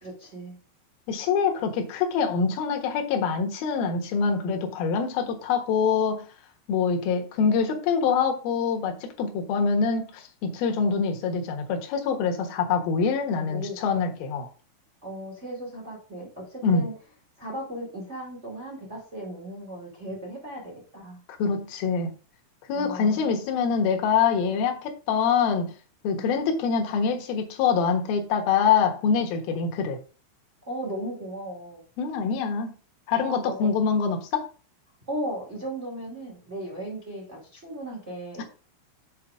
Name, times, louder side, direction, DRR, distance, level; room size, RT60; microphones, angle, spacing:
voice 1, 0.0-0.5 13.4-13.8 15.0-16.9 17.4-21.2 22.7-23.2 26.1-26.2 30.6-31.8 33.1-33.7 35.1-38.4, right 1 dB, 30° right, -2 dB, 1.2 m, -36 dB
voice 2, 1.1-6.3 6.7-14.5 16.6-16.8 21.4-22.1 22.7-25.7 26.0-30.0 32.0-32.7 33.1-34.5 38.4-38.5, left 6 dB, 65° left, 3 dB, 2.7 m, -25 dB
8.5 x 4.8 x 4.9 m, 0.37 s
omnidirectional pair, 5.6 m